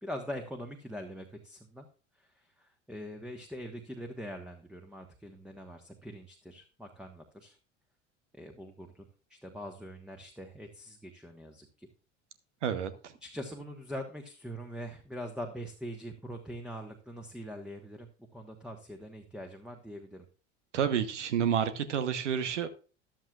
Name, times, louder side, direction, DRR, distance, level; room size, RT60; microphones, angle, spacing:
voice 1, 0.0-1.9 2.2-7.6 8.3-9.0 9.3-11.9 13.2-20.2, equal, ahead, 4 dB, 1.4 m, -43 dB
voice 2, 20.7-22.7, right 8 dB, 75° right, 13 dB, 1.1 m, -29 dB
13.5 x 11.5 x 2.4 m, 0.37 s
figure-of-eight pair, 70°, 36 cm